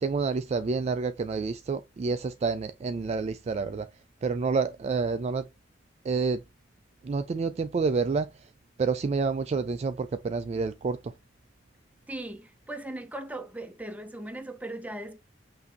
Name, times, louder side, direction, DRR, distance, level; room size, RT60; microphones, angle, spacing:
voice 1, 0.0-3.9 4.2-5.4 6.1-6.4 7.0-8.3 8.8-11.1, right 4 dB, 35° right, 0.3 m, -28 dB
voice 2, 12.1-15.2, right 1 dB, 10° right, 0.7 m, -38 dB
5.9 x 2.7 x 2.4 m
head